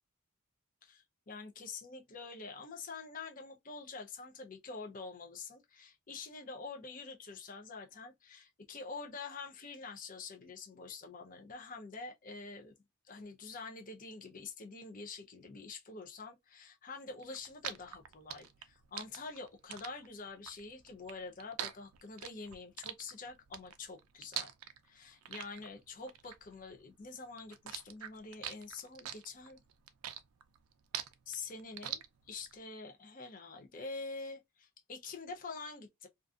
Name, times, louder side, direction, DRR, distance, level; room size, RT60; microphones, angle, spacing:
voice 1, 0.8-12.7 13.0-24.5 24.8-29.6 31.3-36.1, left 4 dB, 40° left, 0.5 m, -46 dB
sound 1, 17.2-27.1 27.4-32.5, right 10 dB, 85° right, 0.4 m, -44 dB
2.4 x 2.4 x 2.3 m
head